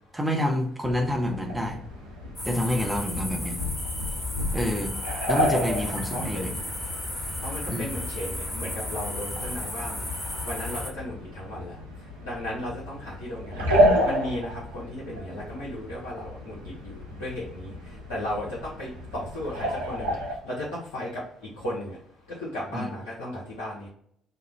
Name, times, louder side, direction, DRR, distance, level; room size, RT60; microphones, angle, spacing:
voice 1, 0.1-1.8 2.4-3.6 4.5-4.9 5.3-6.5 7.7-7.9 22.7-22.9, left 1 dB, 10° right, 1 dB, 0.7 m, -28 dB
sound 1, 0.8-20.3, equal, 80° right, 0.5 m, -31 dB
sound 2, 2.4-10.9, left 1 dB, 25° left, 1.3 m, -34 dB
voice 2, 6.1-6.7 7.4-22.0 22.3-23.9, left 1 dB, 70° left, -8 dB, 0.6 m, -36 dB
2.4 x 2.0 x 3.1 m, 0.69 s
figure-of-eight pair, 45°, 0 cm